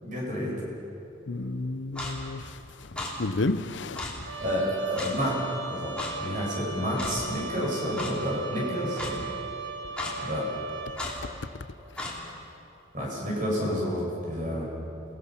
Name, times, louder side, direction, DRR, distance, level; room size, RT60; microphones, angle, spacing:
voice 1, 0.0-0.5 4.4-5.4 5.7-9.3 10.2-10.5 12.9-14.6, equal, 45° right, 7.0 m, -30 dB
voice 2, 1.3-4.4, left 2 dB, 65° left, 0.7 m, -32 dB
Clock, 2.0-2.1 3.0-3.1 4.0-4.1 5.0-5.1 6.0-6.1 7.0-7.1 8.0-8.1 9.0-9.1 10.0-10.1 11.0-11.1 12.0-12.1, left 2 dB, 5° left, 3.3 m, -34 dB
Trumpet, 4.3-11.1, right 3 dB, 70° right, 1.9 m, -37 dB
29.0 x 19.0 x 5.9 m
head